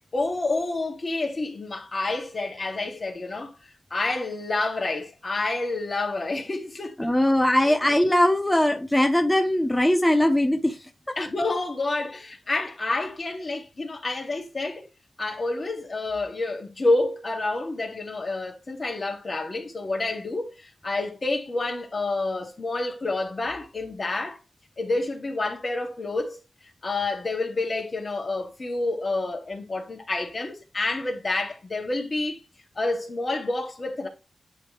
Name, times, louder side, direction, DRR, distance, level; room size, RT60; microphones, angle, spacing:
voice 1, 0.1-3.5 3.9-7.0 7.7-7.8 11.2-14.8 15.2-24.4 24.8-26.4 26.8-32.4 32.8-34.1, left 2 dB, 50° left, 2.2 m, -28 dB
voice 2, 7.0-11.2, left 1 dB, 10° left, 0.8 m, -21 dB
9.9 x 3.5 x 3.2 m
cardioid pair, 60°, 0 cm